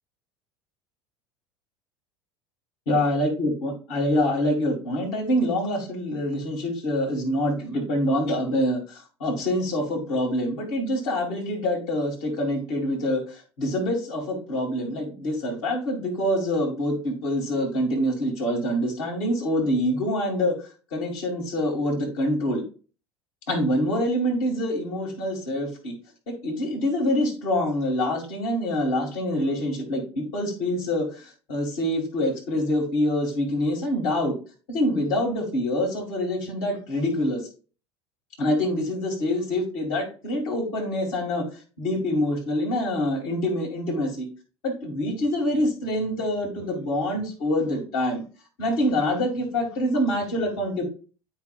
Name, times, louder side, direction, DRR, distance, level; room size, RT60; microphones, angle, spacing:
voice 1, 2.9-20.5 20.9-22.6 23.5-25.9 26.3-34.3 34.7-37.4 38.4-41.4 41.8-44.3 44.6-48.2 48.6-50.8, left 1 dB, 55° left, 0 dB, 2.2 m, -25 dB
8.5 x 4.8 x 2.4 m, 0.36 s
figure-of-eight pair, 70°, 15 cm